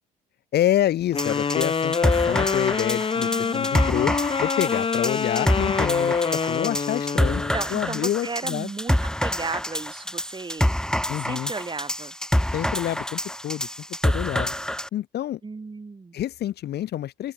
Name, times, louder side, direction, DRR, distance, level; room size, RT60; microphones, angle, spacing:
voice 1, 0.5-7.4 7.7-8.7 11.1-11.5 12.5-13.7 14.0-14.5 14.9-15.4 16.1-17.3, left 12 dB, 50° left, 2.5 m, -27 dB
sound 1, 1.1-7.7, left 5 dB, 25° left, 1.3 m, -25 dB
sound 2, 1.2-14.9, equal, 5° left, 5.7 m, -27 dB
voice 2, 3.1-4.0 7.5-10.8 11.2-12.1 15.4-16.2, right 4 dB, 20° right, 6.8 m, -35 dB
open air
hypercardioid pair, 60°, 21 cm